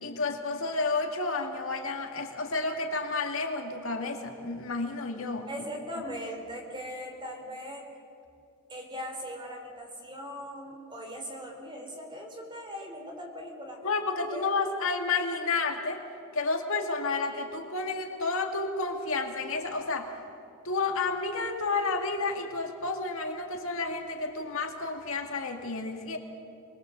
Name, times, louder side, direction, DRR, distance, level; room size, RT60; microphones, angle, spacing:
voice 1, 0.0-5.5 13.8-16.0 16.3-20.1 20.6-26.2, left 3 dB, 65° left, 4 dB, 2.2 m, -31 dB
voice 2, 5.5-7.8 8.7-13.8 14.3-14.8, equal, 20° right, 2 dB, 3.9 m, -40 dB
26.0 x 20.5 x 8.0 m, 2.7 s
head